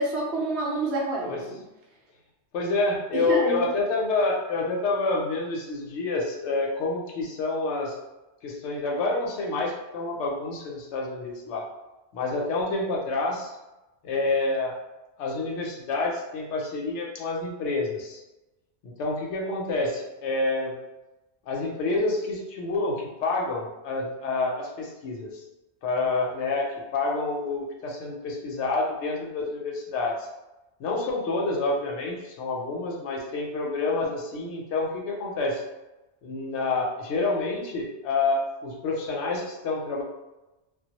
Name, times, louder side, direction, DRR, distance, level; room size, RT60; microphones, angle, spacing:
voice 1, 0.0-1.6 3.1-3.7, right 2 dB, 70° right, -3 dB, 0.9 m, -28 dB
voice 2, 2.5-7.9 8.4-11.6 12.1-13.6 14.0-14.7 15.2-18.2 18.8-20.8 21.5-25.4 25.8-30.3 30.8-35.6 36.2-40.0, left 3 dB, 75° left, -1 dB, 0.8 m, -28 dB
2.2 x 2.0 x 2.8 m, 1.0 s
omnidirectional pair, 1.2 m